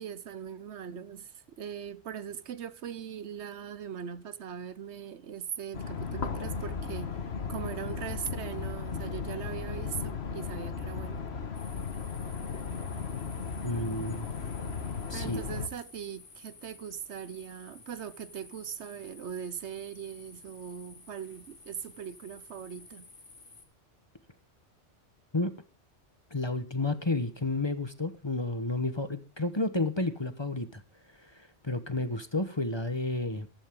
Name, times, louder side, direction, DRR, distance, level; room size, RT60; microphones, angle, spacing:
voice 1, 0.0-7.2 7.5-11.2 15.1-23.1, right 8 dB, 70° right, 1.1 m, -40 dB
sound 1, 5.7-15.7, left 5 dB, 60° left, 1.6 m, -36 dB
sound 2, 11.5-23.6, left 3 dB, 80° left, 2.7 m, -53 dB
voice 2, 13.6-14.3 15.1-15.4 25.3-25.5 26.3-30.8 31.2-33.5, left 2 dB, 25° left, 1.0 m, -31 dB
14.5 x 13.0 x 3.6 m
omnidirectional pair, 1.2 m